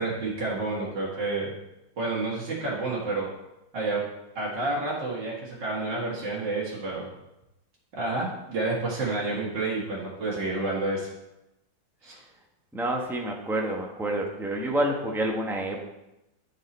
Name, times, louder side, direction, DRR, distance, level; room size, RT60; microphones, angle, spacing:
voice 1, 0.0-1.6 2.0-3.3 3.7-4.0 4.4-7.1 7.9-11.1 12.0-12.1, right 2 dB, 70° right, -5 dB, 2.3 m, -29 dB
voice 2, 12.7-15.8, right 1 dB, ahead, 0 dB, 0.5 m, -28 dB
11.5 x 4.4 x 4.1 m, 0.93 s
omnidirectional pair, 2.0 m